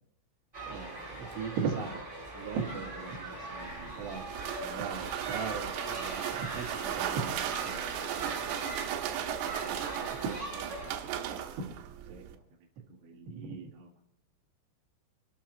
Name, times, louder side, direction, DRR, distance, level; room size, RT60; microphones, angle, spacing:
sound 1, 0.5-10.9, right 1 dB, 10° right, 2.8 m, -41 dB
voice 1, 0.6-2.0 2.3-4.2 4.6-8.9 10.0-12.2 13.0-14.0, right 5 dB, 60° right, -3 dB, 3.7 m, -39 dB
sound 2, 3.6-12.4, right 10 dB, 90° right, 3.6 m, -36 dB
26.5 x 12.5 x 3.0 m, 0.73 s
omnidirectional pair, 6.0 m